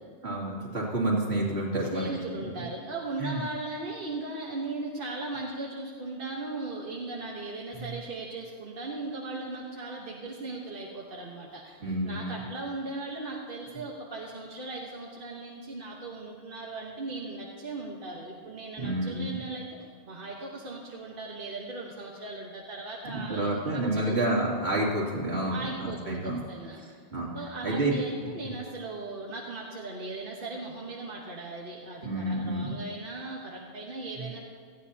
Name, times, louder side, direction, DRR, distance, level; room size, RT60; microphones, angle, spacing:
voice 1, 0.2-2.1 2.6-2.7 3.2-3.4 7.8-7.9 11.8-12.4 18.8-19.4 23.1-26.4 27.1-27.3 27.6-28.0 32.0-32.7 34.2-34.3, right 1 dB, 80° right, -4 dB, 3.0 m, -29 dB
voice 2, 1.8-19.6 20.0-24.2 25.5-27.0 27.3-34.4, right 2 dB, 60° right, -2 dB, 1.4 m, -38 dB
17.5 x 13.5 x 2.9 m, 2.1 s
omnidirectional pair, 1.1 m